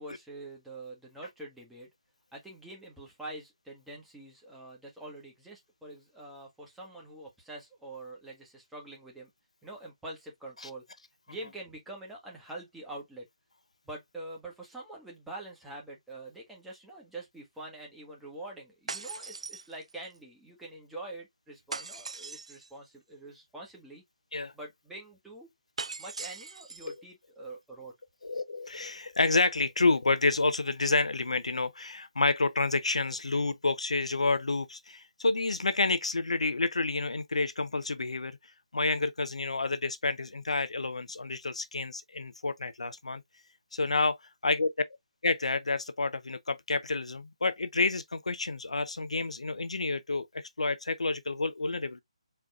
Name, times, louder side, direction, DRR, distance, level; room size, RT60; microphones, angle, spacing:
voice 1, 0.0-1.9 2.3-9.3 9.6-10.8 11.3-13.3 13.8-24.0 24.5-25.5 26.0-27.9, right 2 dB, 5° right, 1.5 m, -45 dB
sound 1, 18.9-20.2 21.7-22.7 25.8-27.0, right 4 dB, 75° right, 0.3 m, -40 dB
voice 2, 28.2-38.4 38.7-43.2 43.7-44.2 44.4-44.7 45.2-52.0, left 3 dB, 85° left, 0.7 m, -29 dB
4.4 x 3.6 x 2.4 m
figure-of-eight pair, 155°, 3 cm